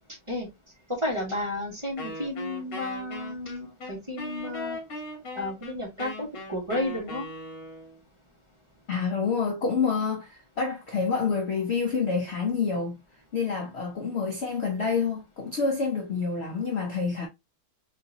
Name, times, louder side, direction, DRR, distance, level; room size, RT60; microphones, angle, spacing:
voice 1, 1.0-4.8 5.3-7.3, left 1 dB, 20° right, 1.1 m, -32 dB
Wind instrument woodwind instrument, 2.0-8.0, left 1 dB, 50° left, 1.7 m, -39 dB
voice 2, 8.9-13.0 13.3-17.3, left 5 dB, 70° left, 0.6 m, -28 dB
3.9 x 3.6 x 2.6 m
omnidirectional pair, 2.2 m